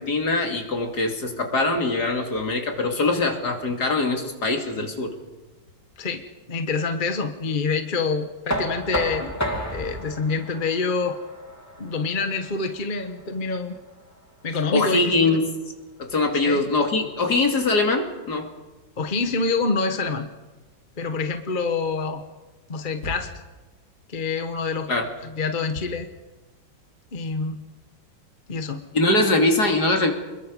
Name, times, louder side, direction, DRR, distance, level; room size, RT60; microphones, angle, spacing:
voice 1, 0.0-5.1 14.7-15.5 16.0-18.5 23.0-23.1 24.9-25.1 28.9-30.1, left 2 dB, 60° left, 3 dB, 3.3 m, -22 dB
voice 2, 6.0-9.3 9.7-11.2 11.8-13.8 14.4-15.3 16.4-16.6 19.0-20.3 21.0-22.2 22.7-23.3 24.1-24.9 25.2-26.1 27.1-27.6 28.5-28.8, left 4 dB, 30° left, 7 dB, 1.3 m, -26 dB
Knock, 8.5-14.3, equal, 10° left, 2.4 m, -32 dB
28.0 x 22.0 x 5.4 m, 1.2 s
omnidirectional pair, 2.0 m